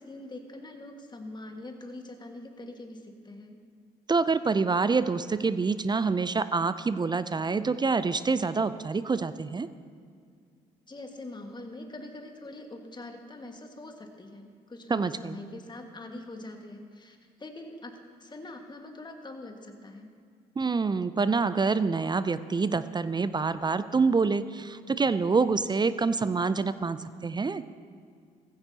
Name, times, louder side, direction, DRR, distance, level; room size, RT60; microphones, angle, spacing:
voice 1, 0.0-3.6 10.9-20.1, left 2 dB, 25° left, 3 dB, 1.8 m, -43 dB
voice 2, 4.1-9.7 14.9-15.4 20.6-27.6, right 4 dB, 25° right, 14 dB, 0.5 m, -26 dB
15.5 x 15.0 x 2.9 m, 2.2 s
hypercardioid pair, 50°, 19 cm